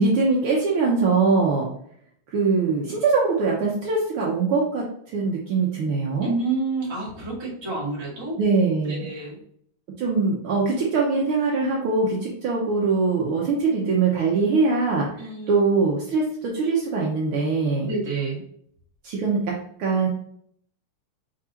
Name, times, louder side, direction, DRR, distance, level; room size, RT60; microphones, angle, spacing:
voice 1, 0.0-1.7 2.3-6.3 8.4-9.0 10.0-17.9 19.0-20.1, right 4 dB, 80° right, -3 dB, 1.2 m, -22 dB
voice 2, 6.2-8.4 8.9-9.4 15.2-15.6 17.9-18.4, right 3 dB, 20° right, -7 dB, 0.6 m, -29 dB
4.6 x 3.7 x 2.8 m, 0.66 s
omnidirectional pair, 3.4 m